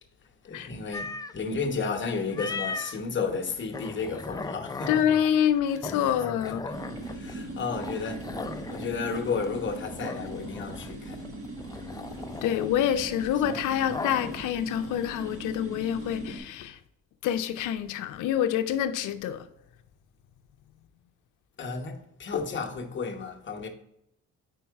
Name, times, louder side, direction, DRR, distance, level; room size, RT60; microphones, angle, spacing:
voice 1, 0.4-5.1 5.7-5.8 6.4-6.8 7.0-11.3 13.3-13.4 21.6-23.7, left 5 dB, 40° left, 1.0 m, -33 dB
sound 1, 0.9-1.3 2.3-3.0 3.4-14.5, left 3 dB, 15° left, 0.3 m, -38 dB
voice 2, 4.9-6.6 12.4-16.8 17.2-19.5, left 10 dB, 85° left, 0.5 m, -27 dB
sound 2, 6.7-16.4, right 1 dB, 45° right, 1.4 m, -40 dB
4.6 x 4.5 x 4.6 m
cardioid pair, 90°, 30 cm